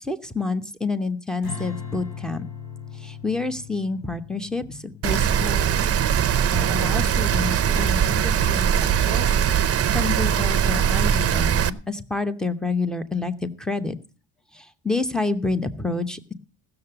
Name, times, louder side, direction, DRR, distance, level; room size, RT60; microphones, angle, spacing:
voice 1, 0.0-2.4 2.9-5.8 6.5-13.9 14.5-16.3, left 3 dB, ahead, 11 dB, 0.8 m, -29 dB
Strum, 1.4-7.8, left 6 dB, 75° left, 5.6 m, -40 dB
Rain, 5.0-11.7, right 9 dB, 35° right, 0.7 m, -21 dB
16.5 x 6.9 x 6.8 m, 0.38 s
cardioid pair, 155°, 42 cm